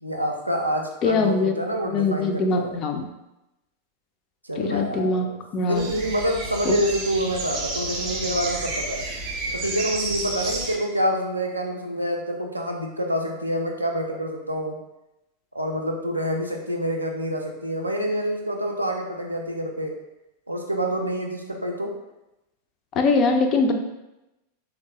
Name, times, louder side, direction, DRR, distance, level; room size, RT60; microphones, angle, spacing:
voice 1, 0.0-2.8 4.4-5.4 5.7-9.0 9.5-14.8 15.5-19.9 20.5-21.9, equal, 85° right, 1 dB, 0.4 m, -27 dB
voice 2, 1.0-1.5 1.9-3.0 4.6-5.3 5.5-5.9 6.6-6.7 23.0-23.7, left 3 dB, 35° left, 5 dB, 0.3 m, -22 dB
sound 1, 5.7-10.8, right 3 dB, 35° right, 0.6 m, -31 dB
3.1 x 2.0 x 2.8 m, 0.93 s
figure-of-eight pair, 90°, 0 cm